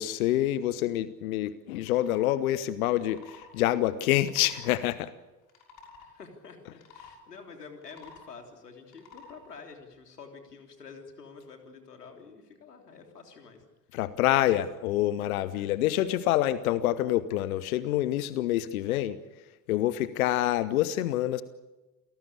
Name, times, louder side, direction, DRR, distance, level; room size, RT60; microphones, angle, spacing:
voice 1, 0.0-5.1 13.9-19.2 19.7-21.4, left 14 dB, 60° left, 16 dB, 1.1 m, -27 dB
sound 1, 1.7-2.2 2.9-3.5 4.2-4.8 5.4-6.1 6.7-7.2 7.7-8.3 8.9-9.4, left 4 dB, 40° left, 6.4 m, -51 dB
voice 2, 6.0-13.6 15.5-15.8, left 5 dB, 75° left, 4 dB, 3.6 m, -48 dB
28.5 x 18.5 x 8.6 m, 1.1 s
figure-of-eight pair, 70°, 47 cm